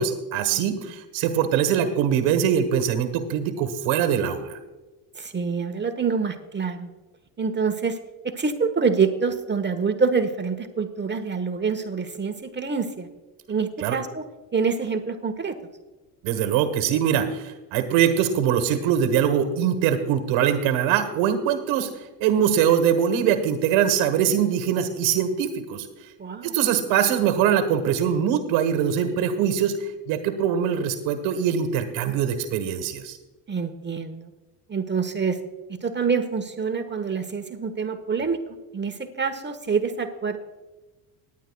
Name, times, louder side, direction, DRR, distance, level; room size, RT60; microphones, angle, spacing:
voice 1, 0.0-4.6 13.8-14.0 16.2-21.9 22.2-25.9 26.4-33.2, right 8 dB, 70° right, 9 dB, 1.4 m, -22 dB
voice 2, 5.1-6.9 7.4-8.0 8.2-13.1 13.5-14.2 14.5-15.6 26.2-26.5 33.5-34.3 34.7-35.4 35.7-38.4 38.7-40.4, right 5 dB, 20° right, 7 dB, 1.1 m, -26 dB
19.5 x 9.5 x 2.3 m, 1.1 s
hypercardioid pair, 70°, 49 cm